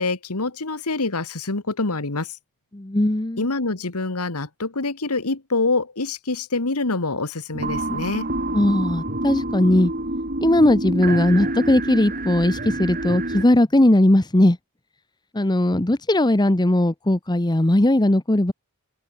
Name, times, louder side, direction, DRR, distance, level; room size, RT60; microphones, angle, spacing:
voice 1, 0.0-2.4 3.4-8.3, left 3 dB, 85° left, 1.9 m, -25 dB
voice 2, 2.7-3.4 8.5-9.9 10.4-14.6 15.3-18.5, left 1 dB, 20° left, 0.9 m, -18 dB
sound 1, 7.5-13.4, right 1 dB, 40° right, 6.6 m, -27 dB
open air
head